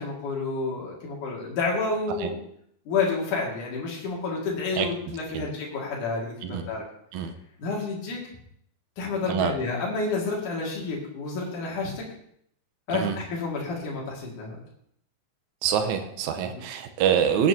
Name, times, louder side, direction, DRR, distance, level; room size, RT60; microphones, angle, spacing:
voice 1, 0.0-2.4 2.9-6.8 7.6-8.2 9.0-12.0 12.9-14.6 16.4-16.5, left 3 dB, 75° left, -3 dB, 3.7 m, -29 dB
voice 2, 15.6-17.5, right 8 dB, 75° right, 6 dB, 2.2 m, -25 dB
17.5 x 9.3 x 2.8 m, 0.68 s
omnidirectional pair, 3.6 m